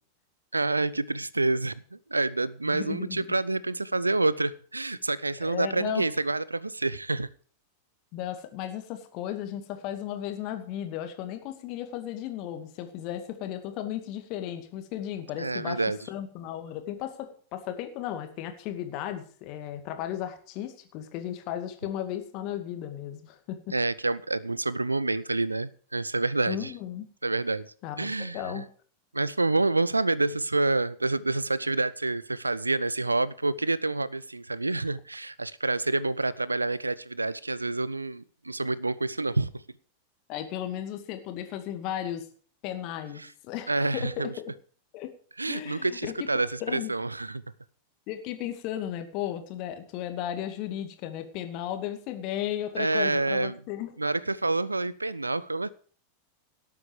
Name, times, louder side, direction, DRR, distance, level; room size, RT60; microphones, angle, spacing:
voice 1, 0.5-7.3 15.4-16.0 23.7-26.7 27.2-28.6 29.1-39.6 43.2-43.3 43.7-44.3 45.4-47.4 52.8-53.6 54.0-55.7, right 2 dB, 80° right, 0.6 m, -28 dB
voice 2, 2.7-3.2 5.4-6.0 8.1-23.7 26.5-27.1 27.8-28.7 40.3-42.3 42.6-44.5 44.9-45.1 45.5-46.1 46.6-46.9 48.1-53.9, left 11 dB, 40° left, 2.3 m, -35 dB
18.0 x 8.5 x 5.0 m
figure-of-eight pair, 90°, 0 cm